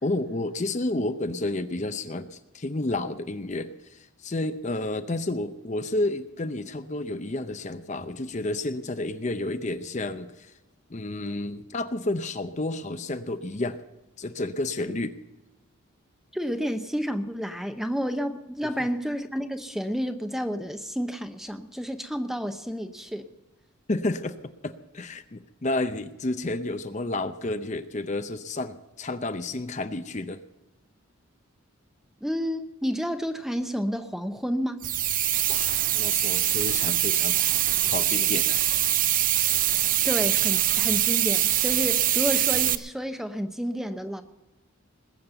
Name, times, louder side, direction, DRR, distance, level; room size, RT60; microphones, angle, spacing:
voice 1, 0.0-10.5 10.9-13.8 14.2-15.1 23.9-24.4 24.6-30.4 35.5-38.7, left 2 dB, 35° left, 10 dB, 0.6 m, -31 dB
voice 2, 16.3-23.3 32.2-34.8 40.0-44.2, equal, ahead, 9 dB, 0.8 m, -30 dB
sound 1, 34.8-42.8, right 13 dB, 40° right, 0.6 m, -23 dB
20.0 x 7.3 x 8.0 m, 1.0 s
head